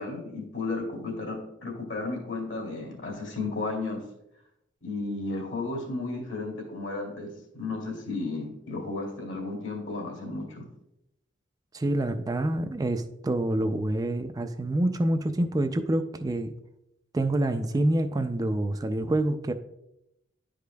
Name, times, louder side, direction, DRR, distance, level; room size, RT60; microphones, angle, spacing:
voice 1, 0.0-4.0 4.8-10.6, left 3 dB, 70° left, 0 dB, 2.2 m, -33 dB
voice 2, 11.7-16.5 17.1-19.5, right 1 dB, 20° right, 8 dB, 0.3 m, -27 dB
10.5 x 5.0 x 2.3 m, 0.83 s
head